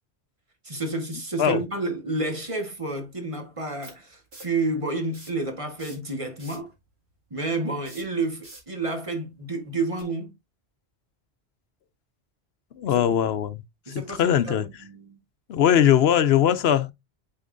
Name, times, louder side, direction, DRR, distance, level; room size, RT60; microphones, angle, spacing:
voice 1, 0.6-6.7 7.3-10.3 12.8-12.9 13.9-15.2, right 2 dB, 30° right, 1.4 m, -30 dB
sound 1, 2.3-2.4 3.8-4.6 5.0-5.4 5.7-6.7 7.8-8.7 9.9-10.0, right 2 dB, 70° right, 2.4 m, -46 dB
voice 2, 12.7-13.6 14.1-14.7 15.5-16.9, left 10 dB, 70° left, 0.9 m, -20 dB
8.8 x 4.2 x 2.5 m
omnidirectional pair, 1.1 m